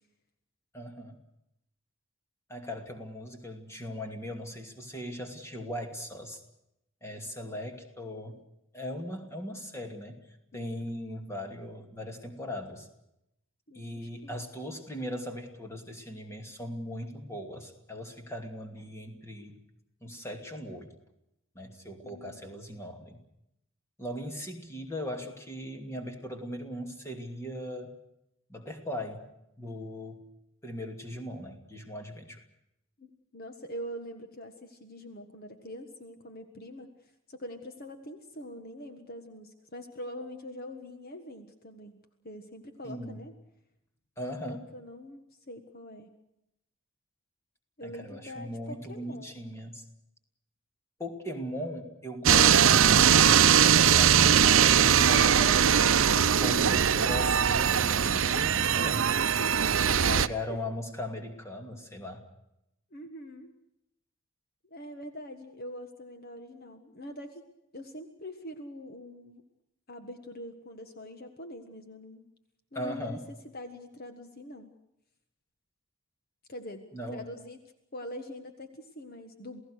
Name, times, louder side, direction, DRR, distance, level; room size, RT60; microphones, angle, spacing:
voice 1, 0.7-1.2 2.5-6.4 7.0-8.4 8.7-12.9 13.7-19.6 20.0-20.9 21.5-23.2 24.0-28.0 28.5-29.3 29.6-30.3 30.6-32.4 42.8-43.2 44.2-44.7 47.8-49.8 51.0-53.5 53.9-59.2 59.7-62.2 72.7-73.2 76.9-77.2, equal, 10° left, 4 dB, 2.6 m, -39 dB
voice 2, 13.7-14.5 22.0-22.4 33.0-36.9 37.3-43.3 44.7-46.1 47.8-49.3 59.4-60.6 62.9-63.5 64.6-67.4 67.7-69.4 69.9-72.2 72.7-73.2 73.5-74.7 76.5-77.6 77.9-79.6, equal, 45° left, 7 dB, 1.6 m, -43 dB
sound 1, 52.3-60.3, right 8 dB, 65° right, 0.7 m, -21 dB
28.5 x 17.5 x 6.5 m, 0.83 s
head